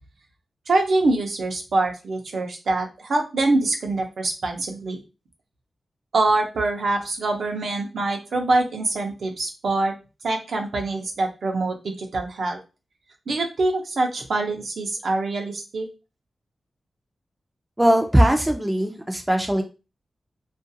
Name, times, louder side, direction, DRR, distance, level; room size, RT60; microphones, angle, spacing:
voice 1, 0.7-5.0 6.1-9.9 10.2-12.6 13.3-15.9, right 2 dB, 75° right, 2 dB, 0.6 m, -24 dB
voice 2, 17.8-19.6, right 1 dB, 10° right, 4 dB, 0.4 m, -19 dB
2.5 x 2.2 x 2.7 m, 0.30 s
wide cardioid pair, 115°, 0 cm